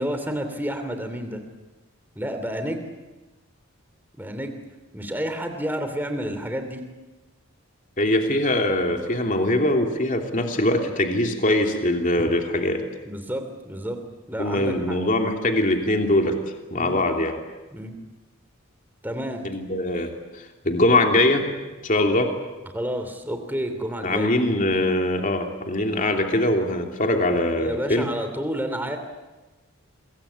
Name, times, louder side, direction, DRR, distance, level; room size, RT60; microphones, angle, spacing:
voice 1, 0.0-1.4 2.1-2.9 4.2-4.6 4.9-6.8 13.0-14.0 14.3-15.0 16.7-17.0 17.7-17.9 19.0-19.4 22.7-24.3 27.5-29.0, equal, 10° right, 6 dB, 2.9 m, -30 dB
voice 2, 8.0-12.8 14.4-16.4 16.7-17.4 19.4-20.1 20.4-21.4 21.8-22.3 24.0-28.1, left 1 dB, 35° left, 3 dB, 3.1 m, -22 dB
27.5 x 22.5 x 8.7 m, 1.2 s
head